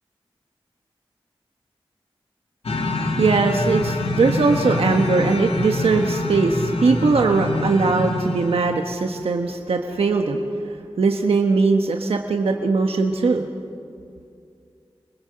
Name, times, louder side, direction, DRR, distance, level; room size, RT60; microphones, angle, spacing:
sound 1, 2.6-8.8, left 2 dB, 80° left, 2.3 m, -25 dB
voice 1, 2.9-13.4, right 4 dB, 90° right, 3 dB, 1.2 m, -20 dB
29.0 x 20.5 x 7.7 m, 2.4 s
cardioid pair, 40°, 10 cm